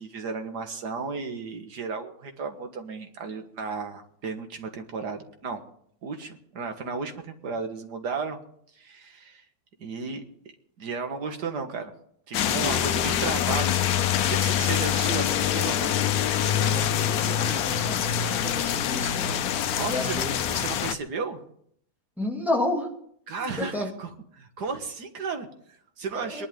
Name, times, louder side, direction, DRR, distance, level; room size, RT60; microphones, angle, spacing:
voice 1, 0.0-5.6 6.0-8.4 8.8-9.4 9.8-10.2 10.8-11.9 12.3-13.9 14.2-15.9 19.7-21.4 23.3-26.5, right 4 dB, 85° right, 6 dB, 2.1 m, -34 dB
sound 1, 12.3-20.9, left 10 dB, 70° left, 1.1 m, -25 dB
voice 2, 16.6-19.4 19.9-20.3 22.2-22.9 23.4-23.9 26.1-26.5, left 1 dB, ahead, -3 dB, 2.8 m, -31 dB
22.0 x 11.0 x 3.7 m, 0.66 s
omnidirectional pair, 1.7 m